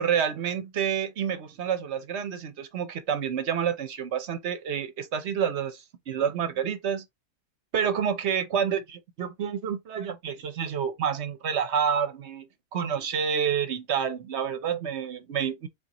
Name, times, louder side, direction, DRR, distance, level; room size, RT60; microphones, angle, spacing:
voice 1, 0.0-7.0 7.7-15.7, right 7 dB, 60° right, 0.9 m, -28 dB
4.0 x 3.8 x 2.9 m
omnidirectional pair, 1.4 m